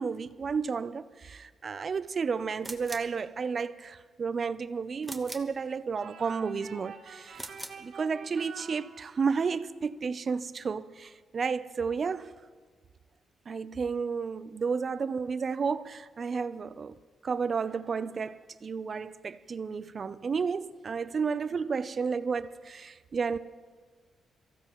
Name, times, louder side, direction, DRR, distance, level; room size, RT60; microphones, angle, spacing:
voice 1, 0.0-7.5 7.8-12.3 13.5-16.9 17.2-23.4, right 5 dB, 40° right, 0.5 m, -32 dB
sound 1, 2.6-3.2 5.0-5.6 7.3-7.9, right 2 dB, 10° right, 1.1 m, -42 dB
sound 2, 6.0-9.5, right 6 dB, 65° right, 1.6 m, -47 dB
23.5 x 15.5 x 3.0 m
cardioid pair, 110°, 0 cm